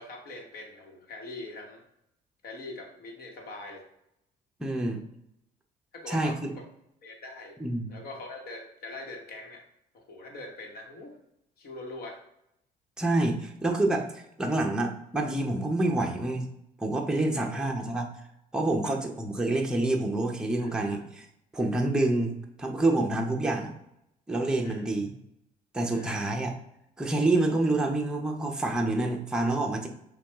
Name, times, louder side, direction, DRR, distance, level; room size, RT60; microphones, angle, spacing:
voice 1, 0.0-1.8 2.4-3.8 5.9-6.6 7.0-7.6 7.9-9.6 9.9-11.2 11.6-12.2 17.3-17.7 18.8-18.9 20.6-21.0 24.6-24.8 25.9-26.1, left 2 dB, 65° left, 2 dB, 1.2 m, -43 dB
voice 2, 4.6-5.0 6.1-6.5 7.6-7.9 13.0-16.5 16.8-18.1 18.5-21.3 21.5-23.7 24.3-25.1 25.7-26.5 27.0-29.9, right 2 dB, 5° right, 1 dB, 0.6 m, -27 dB
5.8 x 2.3 x 3.5 m, 0.79 s
cardioid pair, 110°, 17 cm